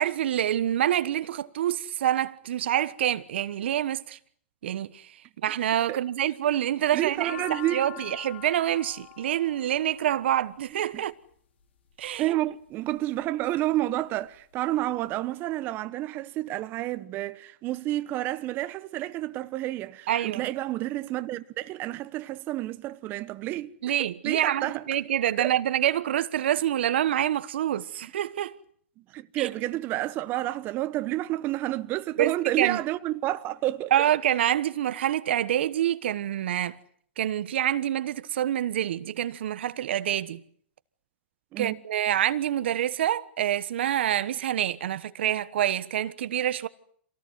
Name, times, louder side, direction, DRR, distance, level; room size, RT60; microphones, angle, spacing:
voice 1, 0.0-4.2 4.6-5.2 5.4-11.1 12.0-12.3 20.1-20.5 23.8-28.6 29.4-29.5 32.2-32.8 33.9-36.8 37.2-40.4 41.6-46.7, right 11 dB, 70° right, 1.2 m, -26 dB
sound 1, 6.8-11.1 11.9-12.4 13.0-13.6 14.0-14.1 14.2-15.1, left 14 dB, 70° left, 5.1 m, -44 dB
voice 2, 6.9-7.9 12.2-23.7 24.2-24.8 25.4-25.5 29.1-33.9 41.5-41.8, right 15 dB, 35° right, 1.0 m, -30 dB
27.0 x 18.5 x 9.5 m
hypercardioid pair, 130°, 6 cm